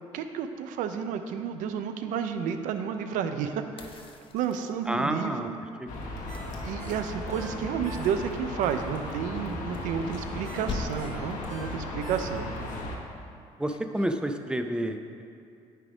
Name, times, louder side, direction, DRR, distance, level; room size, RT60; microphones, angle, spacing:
voice 1, 0.1-5.5 6.6-12.5, right 7 dB, 80° right, 8 dB, 0.5 m, -31 dB
sound 1, 3.8-5.1 6.3-7.5 9.3-10.4 10.7-11.3 13.7-14.1, left 3 dB, 40° left, 0.6 m, -40 dB
voice 2, 4.9-5.5 13.6-15.2, right 1 dB, 5° right, 6 dB, 0.5 m, -29 dB
sound 2, 5.9-13.0, left 2 dB, 70° left, 1.1 m, -36 dB
Ringtone, 6.3-8.5 8.9-9.0 10.4-12.7 13.1-13.2, right 1 dB, 65° right, 1.5 m, -47 dB
9.9 x 3.4 x 4.9 m, 2.4 s
supercardioid pair, 70°, 13 cm